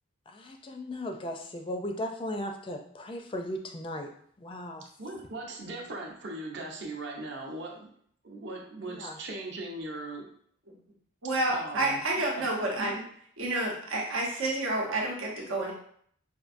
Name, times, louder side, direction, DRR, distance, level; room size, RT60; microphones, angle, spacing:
voice 1, 0.3-4.1 4.4-4.8 8.8-9.2, left 1 dB, 25° left, 4 dB, 0.4 m, -37 dB
voice 2, 5.0-7.9 8.2-10.3 11.5-12.0 12.8-12.9, right 2 dB, 60° right, 0 dB, 0.7 m, -39 dB
voice 3, 11.2-13.0 13.4-15.7, right 2 dB, 90° right, -2 dB, 0.9 m, -29 dB
5.0 x 2.6 x 2.5 m, 0.63 s
head